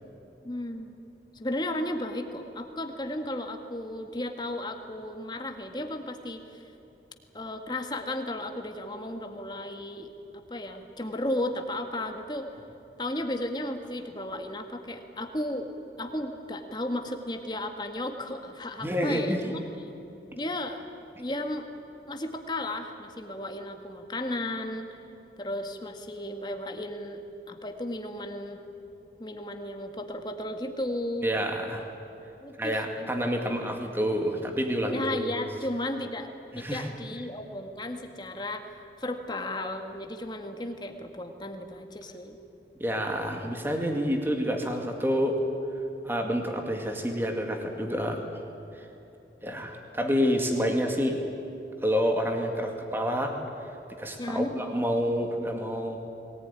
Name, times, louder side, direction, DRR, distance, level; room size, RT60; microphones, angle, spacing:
voice 1, 0.4-0.9 1.3-6.7 7.3-12.5 13.0-15.7 16.0-19.9 20.3-20.8 21.2-21.6 22.1-25.0 25.4-28.6 29.2-31.3 32.4-33.1 34.9-38.7 39.0-42.4 54.2-54.5, left 1 dB, 25° left, 5 dB, 1.7 m, -34 dB
voice 2, 18.8-19.4 31.2-31.8 32.6-35.3 36.5-36.9 42.8-45.4 46.0-48.2 49.4-51.2 51.8-53.4 54.0-56.0, equal, 15° right, 3 dB, 2.1 m, -28 dB
22.0 x 19.0 x 9.8 m, 2.9 s
head